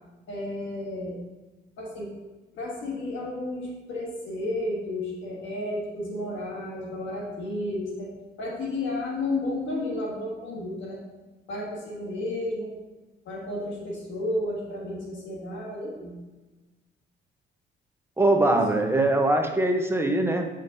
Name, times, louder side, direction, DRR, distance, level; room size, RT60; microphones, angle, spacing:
voice 1, 0.3-1.2 1.8-2.1 2.5-11.0 11.5-12.8 13.2-16.2 18.3-18.6, left 1 dB, 75° left, -2 dB, 1.5 m, -32 dB
voice 2, 18.2-20.5, right 2 dB, 10° right, 4 dB, 0.9 m, -22 dB
8.6 x 5.2 x 2.7 m, 1.2 s
cardioid pair, 90°, 20 cm